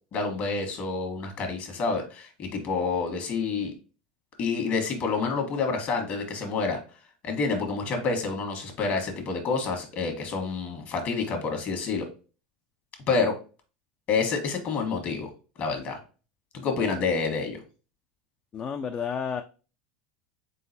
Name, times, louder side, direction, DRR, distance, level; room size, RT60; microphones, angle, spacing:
voice 1, 0.1-3.7 4.4-6.8 7.2-12.0 13.1-13.3 14.1-15.3 15.6-16.0 16.5-17.6, left 4 dB, 45° left, 4 dB, 1.3 m, -28 dB
voice 2, 18.5-19.4, left 6 dB, 30° left, 7 dB, 0.3 m, -31 dB
3.9 x 3.8 x 2.7 m, 0.35 s
supercardioid pair, 105°, 4 cm